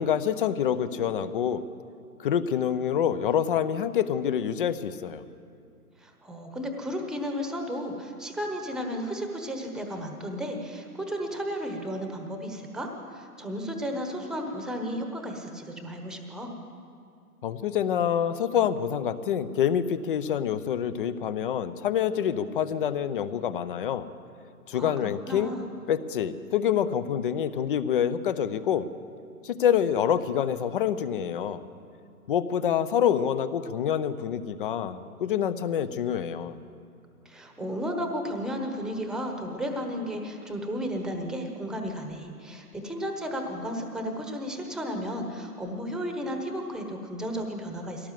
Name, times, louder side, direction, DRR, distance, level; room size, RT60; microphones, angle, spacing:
voice 1, 0.0-1.6 2.2-5.2 17.4-24.1 24.7-25.5 25.9-28.9 29.4-31.6 32.3-36.6, left 9 dB, 35° left, 14 dB, 0.8 m, -26 dB
voice 2, 6.0-16.5 24.7-25.7 37.2-48.1, equal, ahead, 4 dB, 1.1 m, -33 dB
22.0 x 17.5 x 7.6 m, 2.4 s
hypercardioid pair, 145°, 46 cm